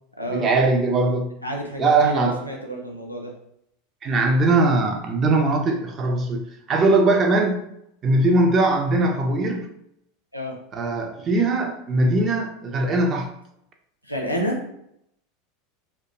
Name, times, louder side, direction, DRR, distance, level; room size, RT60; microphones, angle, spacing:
voice 1, 0.3-1.3 1.8-2.4 4.0-7.6 8.0-9.7 10.7-13.3, right 2 dB, 30° right, 3 dB, 0.4 m, -20 dB
voice 2, 1.4-3.3 10.3-10.6 14.1-14.6, equal, 90° left, -1 dB, 0.5 m, -29 dB
2.1 x 2.1 x 2.9 m, 0.76 s
figure-of-eight pair, 80°, 0 cm